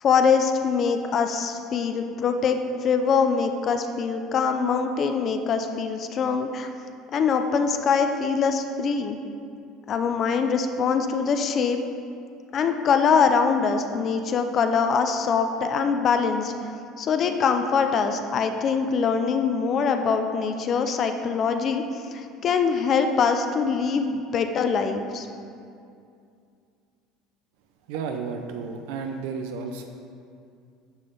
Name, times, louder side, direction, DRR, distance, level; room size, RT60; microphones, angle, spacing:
voice 1, 0.0-6.7 7.1-9.2 9.9-11.8 12.5-16.5 17.0-21.8 22.1-25.3, left 5 dB, 40° left, 6 dB, 0.4 m, -23 dB
voice 2, 27.9-29.8, right 5 dB, 85° right, 5 dB, 0.5 m, -32 dB
9.7 x 3.3 x 5.3 m, 2.4 s
cardioid pair, 130°, 0 cm